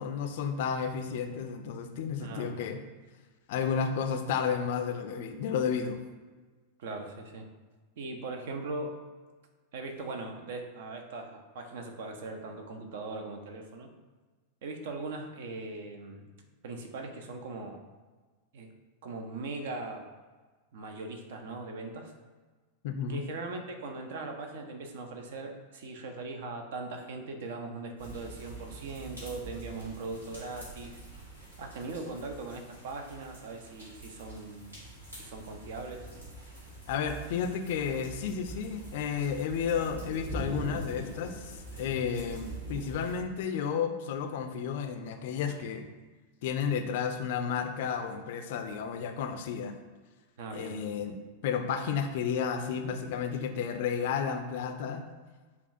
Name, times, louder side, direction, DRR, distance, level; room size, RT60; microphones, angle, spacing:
voice 1, 0.0-2.8 3.5-6.0 22.8-23.2 36.9-45.8 46.4-49.8 50.5-51.2 51.4-55.0, left 7 dB, 50° left, 6 dB, 0.4 m, -32 dB
voice 2, 2.2-2.7 6.8-7.5 8.0-9.0 9.7-13.9 14.6-16.2 16.6-17.8 18.5-18.7 19.0-20.1 20.7-22.1 23.1-31.0 31.6-34.8 35.1-36.1 50.4-50.8, right 3 dB, 55° right, 5 dB, 0.5 m, -40 dB
sound 1, 28.0-43.2, right 1 dB, 75° right, 1.5 m, -44 dB
6.8 x 2.3 x 2.6 m, 1.3 s
figure-of-eight pair, 90°, 0 cm